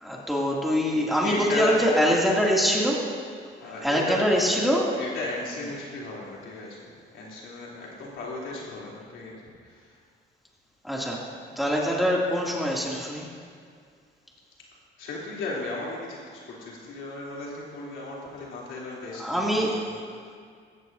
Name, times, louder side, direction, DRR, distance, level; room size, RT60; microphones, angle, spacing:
voice 1, 0.0-3.1 3.8-5.0 10.8-11.2 11.6-13.3 19.2-19.8, equal, ahead, -4 dB, 2.6 m, -24 dB
voice 2, 1.2-1.8 3.6-4.2 5.0-10.0 15.0-20.0, left 2 dB, 80° left, -5 dB, 3.3 m, -35 dB
16.0 x 14.0 x 2.7 m, 2.1 s
cardioid pair, 90°, 20 cm